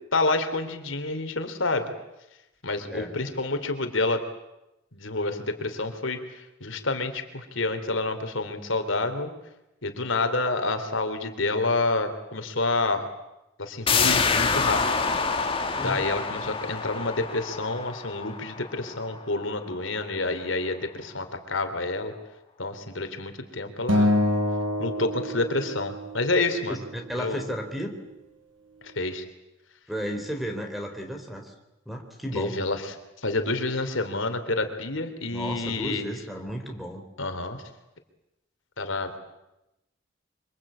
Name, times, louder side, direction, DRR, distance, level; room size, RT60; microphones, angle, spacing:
voice 1, 0.1-1.9 2.6-4.2 4.9-9.3 9.8-13.1 13.6-14.8 15.8-22.1 22.6-24.1 24.8-26.8 27.2-27.4 28.9-29.2 32.3-32.9 33.2-36.1 37.2-37.6 38.8-39.1, left 2 dB, 75° left, 7 dB, 3.3 m, -28 dB
sound 1, 13.9-19.3 19.7-19.8, left 5 dB, 30° left, 2.4 m, -27 dB
Acoustic guitar, 23.9-26.3, left 1 dB, 75° right, 6.2 m, -25 dB
voice 2, 26.7-27.9 29.9-31.5 31.9-32.6 35.3-37.0, equal, ahead, 4 dB, 3.9 m, -33 dB
26.0 x 25.5 x 8.7 m, 0.91 s
head